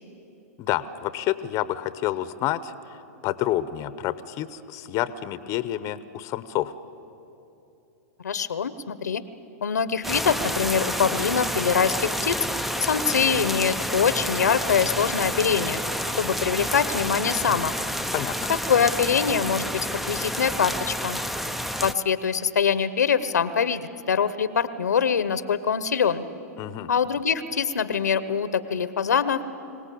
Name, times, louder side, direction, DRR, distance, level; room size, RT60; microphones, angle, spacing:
voice 1, 0.6-6.7 18.1-18.5 26.6-26.9, left 13 dB, 35° left, 14 dB, 0.8 m, -29 dB
voice 2, 8.2-9.2 9.6-12.4 12.8-15.8 16.2-17.7 18.5-21.2 21.8-26.2 26.9-29.4, left 7 dB, 90° left, 14 dB, 1.0 m, -24 dB
sound 1, 10.0-21.9, equal, ahead, 0.6 m, -29 dB
25.0 x 17.5 x 8.5 m, 2.9 s
hypercardioid pair, 120°, 9 cm